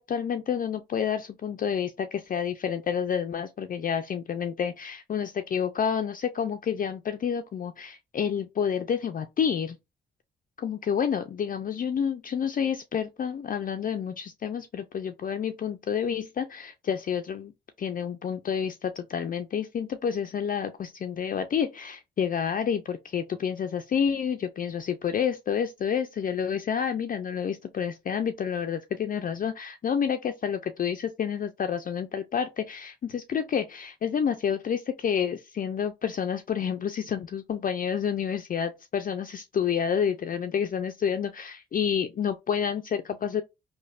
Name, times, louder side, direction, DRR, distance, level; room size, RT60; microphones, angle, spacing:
voice 1, 0.0-9.8 10.6-17.5 17.8-43.4, left 7 dB, 45° left, 0.4 m, -29 dB
3.2 x 2.1 x 2.3 m
supercardioid pair, 55°, 20 cm